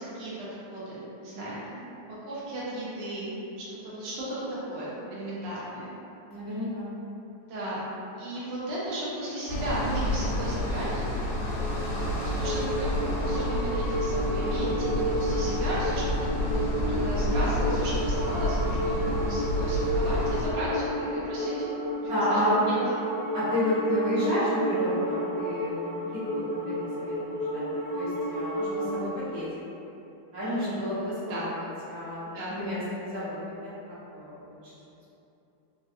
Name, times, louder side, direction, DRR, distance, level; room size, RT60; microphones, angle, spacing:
voice 1, 0.0-1.8 2.2-5.9 7.5-7.8 8.2-11.0 12.2-21.7 22.0-22.7 30.4-30.8 31.3-31.5 32.3-32.6, right 1 dB, 80° right, -8 dB, 0.5 m, -35 dB
voice 2, 6.3-6.9 19.0-19.2 22.1-22.8 23.3-25.7 26.1-27.6 27.9-29.4 30.3-33.7 34.1-34.7, left 1 dB, 55° right, -12 dB, 1.6 m, -31 dB
sound 1, 9.5-20.5, left 1 dB, 85° left, 1.4 m, -29 dB
sound 2, 11.5-29.1, right 1 dB, 65° left, 0.9 m, -31 dB
3.8 x 2.4 x 2.5 m, 2.9 s
omnidirectional pair, 2.1 m